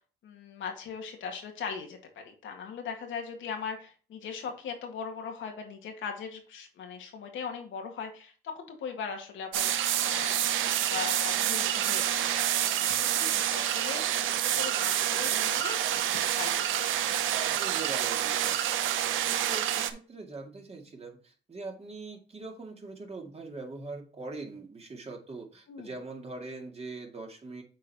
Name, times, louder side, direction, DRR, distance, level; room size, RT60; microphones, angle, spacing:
voice 1, 0.2-12.2 12.6-16.9 25.7-25.9, left 6 dB, 75° left, 3 dB, 1.9 m, -40 dB
sound 1, 9.5-19.9, right 11 dB, 85° right, 0.8 m, -28 dB
voice 2, 17.5-18.8 19.3-27.6, right 3 dB, 30° right, 2 dB, 2.1 m, -42 dB
7.5 x 4.2 x 4.1 m, 0.38 s
cardioid pair, 90°, 20 cm